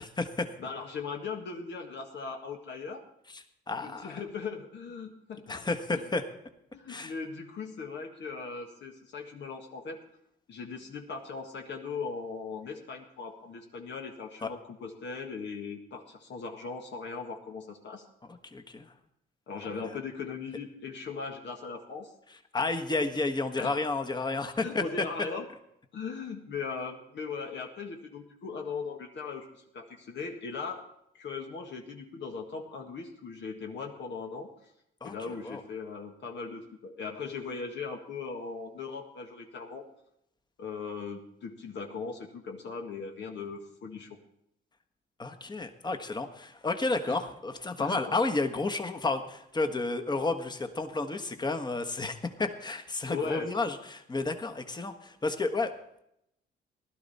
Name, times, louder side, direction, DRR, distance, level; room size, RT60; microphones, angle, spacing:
voice 1, 0.0-0.5 3.3-4.2 5.5-6.2 6.9-7.1 14.4-14.5 18.5-18.9 22.5-24.8 35.0-35.1 35.4-35.6 45.2-55.7, left 3 dB, 20° left, 6 dB, 1.3 m, -31 dB
voice 2, 0.6-3.0 3.8-5.6 5.9-6.1 6.7-10.0 10.5-18.0 19.5-22.1 23.6-23.7 24.6-25.5 25.9-30.8 31.1-34.5 35.0-39.8 40.6-44.2 47.1-47.2 47.8-48.0 53.0-53.5, left 5 dB, 65° left, 2 dB, 1.6 m, -39 dB
16.0 x 12.0 x 4.2 m, 0.78 s
cardioid pair, 90°, 20 cm